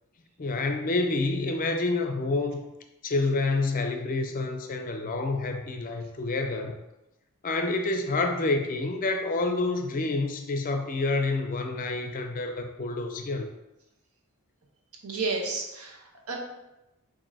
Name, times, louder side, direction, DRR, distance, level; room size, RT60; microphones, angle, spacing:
voice 1, 0.4-2.7 3.0-6.8 7.4-13.5, left 3 dB, 40° left, 5 dB, 0.4 m, -28 dB
voice 2, 15.0-16.4, right 3 dB, 75° right, 1 dB, 0.7 m, -32 dB
7.1 x 2.6 x 2.6 m, 0.95 s
head